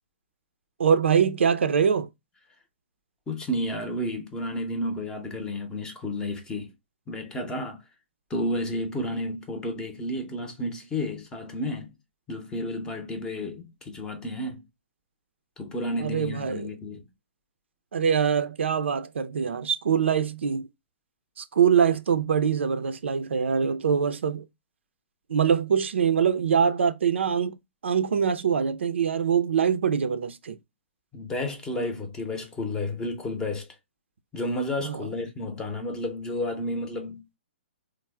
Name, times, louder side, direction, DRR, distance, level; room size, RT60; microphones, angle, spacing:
voice 1, 0.8-2.1 16.0-16.7 17.9-20.7 21.4-24.4 25.3-27.6 27.8-30.6 34.8-35.0, right 7 dB, 80° right, 0.5 m, -23 dB
voice 2, 3.3-6.7 7.1-7.8 8.3-12.0 12.3-14.6 15.6-17.1 31.1-33.7 34.3-37.4, left 1 dB, 10° left, 0.6 m, -31 dB
3.3 x 2.0 x 3.3 m
hypercardioid pair, 145°, 6 cm